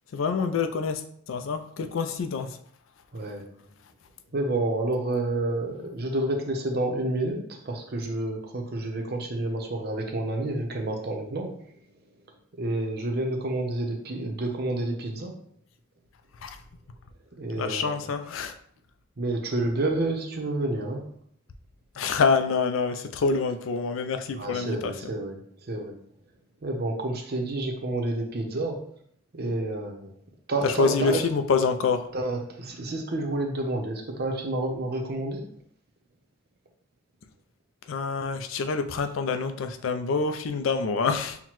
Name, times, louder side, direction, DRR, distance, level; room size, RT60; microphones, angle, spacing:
voice 1, 0.1-1.0 1.3-2.6 16.4-16.6 17.6-18.5 22.0-24.9 30.6-32.1 37.9-41.4, left 4 dB, 70° left, 8 dB, 0.4 m, -26 dB
voice 2, 3.1-3.5 4.3-11.7 12.6-15.3 17.4-18.1 19.2-21.0 24.4-26.0 26.6-28.8 29.3-30.1 30.5-31.3 32.1-35.4, right 2 dB, 50° right, 3 dB, 0.7 m, -29 dB
5.7 x 2.1 x 3.0 m, 0.64 s
head